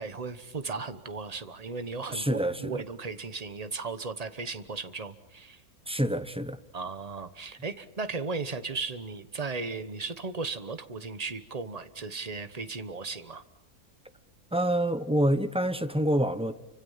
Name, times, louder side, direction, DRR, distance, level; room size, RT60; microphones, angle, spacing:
voice 1, 0.0-5.6 6.7-13.4, right 4 dB, 30° right, 1.1 m, -36 dB
voice 2, 2.1-2.8 5.9-6.6 14.5-16.5, right 1 dB, 5° right, 0.6 m, -27 dB
29.5 x 25.5 x 5.7 m
omnidirectional pair, 1.6 m